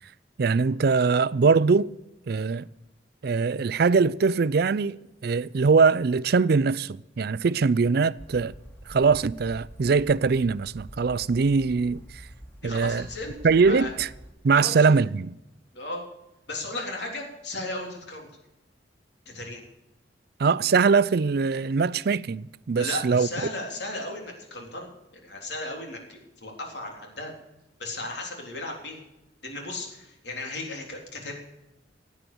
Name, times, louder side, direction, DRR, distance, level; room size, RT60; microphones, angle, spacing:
voice 1, 0.4-2.0 2.3-2.7 3.2-8.5 8.9-12.0 12.6-13.1 13.4-14.1 14.4-15.4 20.4-23.3, right 5 dB, 60° right, 0.4 m, -22 dB
sound 1, 8.2-14.3, equal, 15° left, 3.0 m, -46 dB
voice 2, 12.6-13.4 13.6-13.9 14.6-14.9 15.7-16.0 16.5-18.3 19.3-19.6 22.8-24.9 25.1-27.3 27.8-29.0 29.4-31.3, left 2 dB, 70° left, 3.7 m, -35 dB
16.0 x 9.2 x 7.0 m
head